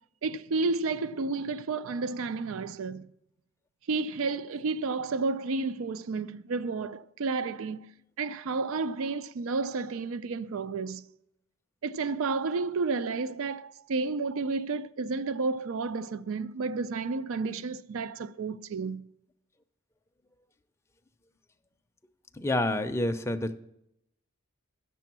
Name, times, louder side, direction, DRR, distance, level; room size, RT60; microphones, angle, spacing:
voice 1, 0.2-3.0 3.9-7.9 8.2-11.0 11.8-19.0, right 4 dB, 70° right, 0.4 m, -31 dB
voice 2, 22.4-23.5, left 1 dB, 10° left, 0.5 m, -28 dB
10.5 x 6.9 x 6.0 m
head